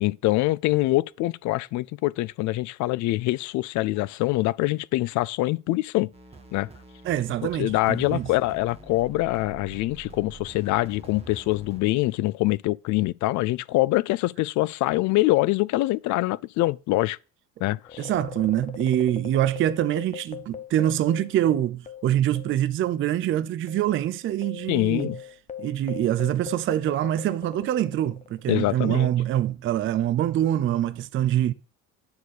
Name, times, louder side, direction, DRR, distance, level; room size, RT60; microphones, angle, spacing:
voice 1, 0.0-6.1 6.5-6.7 7.6-17.2 17.6-18.1 24.7-25.2 28.5-29.1, left 18 dB, 60° left, 0.5 m, -24 dB
sound 1, 6.1-11.8, right 3 dB, 20° right, 1.6 m, -46 dB
voice 2, 7.0-8.3 18.0-25.1 25.6-31.5, right 12 dB, 35° right, 0.5 m, -25 dB
sound 2, 17.8-22.7 22.9-23.1 23.7-28.4, left 8 dB, 20° left, 0.7 m, -40 dB
9.5 x 4.2 x 6.5 m
cardioid pair, 135°, 34 cm